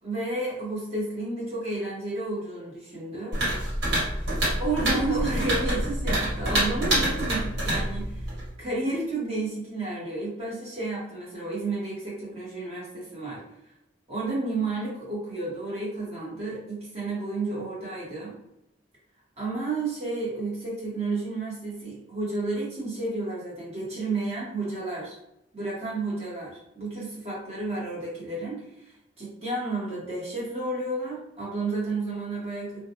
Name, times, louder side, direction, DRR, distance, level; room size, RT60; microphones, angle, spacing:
voice 1, 0.0-3.4 4.6-8.3 8.6-13.4 14.1-18.4 19.4-25.2 25.5-32.8, right 2 dB, 35° right, -6 dB, 1.1 m, -31 dB
sound 1, 3.3-8.5, right 1 dB, 70° right, 1.3 m, -27 dB
2.3 x 2.2 x 2.8 m, 0.83 s
head